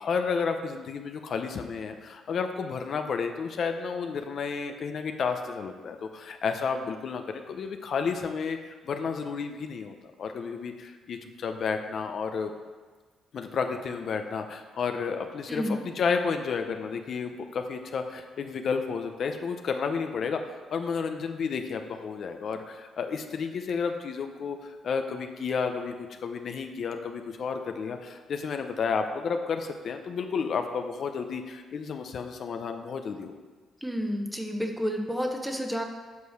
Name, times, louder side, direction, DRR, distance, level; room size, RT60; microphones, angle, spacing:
voice 1, 0.0-12.5 13.3-20.4 20.7-25.9 26.2-33.3, left 5 dB, 60° left, 6 dB, 0.7 m, -31 dB
voice 2, 15.5-15.8 33.8-35.8, equal, 5° right, 3 dB, 1.1 m, -30 dB
8.3 x 4.8 x 6.5 m, 1.4 s
cardioid pair, 90°, 0 cm